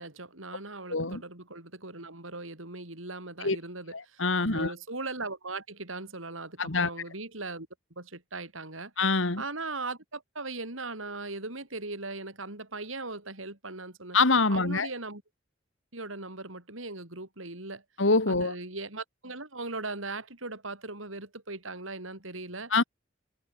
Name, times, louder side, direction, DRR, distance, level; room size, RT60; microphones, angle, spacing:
voice 1, 0.0-7.7 8.0-8.9 9.4-14.2 14.5-15.2 15.9-17.8 18.3-22.7, right 3 dB, 90° right, 6.3 m, -39 dB
voice 2, 0.9-1.2 3.4-3.6 3.9-4.7 6.6-6.9 9.0-9.4 14.1-14.9 18.0-18.5 22.7-22.8, left 3 dB, 75° left, 2.3 m, -25 dB
head